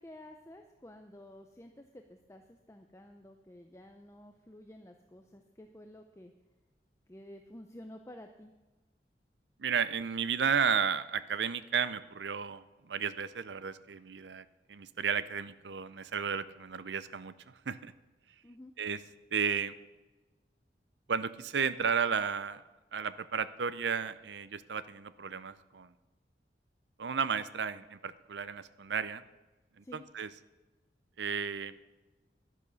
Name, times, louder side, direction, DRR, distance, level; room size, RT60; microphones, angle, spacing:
voice 1, 0.0-6.3 7.1-8.5 18.4-18.8 29.8-30.1, left 1 dB, 15° left, 5 dB, 0.6 m, -51 dB
voice 2, 9.6-17.9 18.8-19.0 19.3-19.8 21.1-22.6 22.9-25.9 27.0-29.2 29.8-30.3 31.2-31.7, right 6 dB, 90° right, 15 dB, 0.6 m, -33 dB
11.0 x 10.5 x 6.3 m, 1.2 s
head